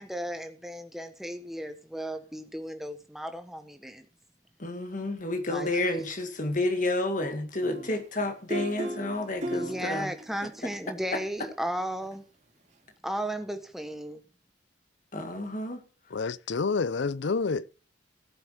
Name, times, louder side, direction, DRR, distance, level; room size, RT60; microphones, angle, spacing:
voice 1, 0.0-4.1 5.5-5.7 9.5-12.2 13.0-14.2, equal, ahead, 1.2 m, -35 dB
voice 2, 4.6-10.1 15.1-15.8, left 2 dB, 40° left, 1.9 m, -30 dB
sound 1, 7.6-10.5 12.0-12.1, right 1 dB, 35° right, 2.3 m, -36 dB
voice 3, 16.1-17.7, left 4 dB, 65° left, 0.5 m, -28 dB
14.5 x 8.2 x 4.7 m
head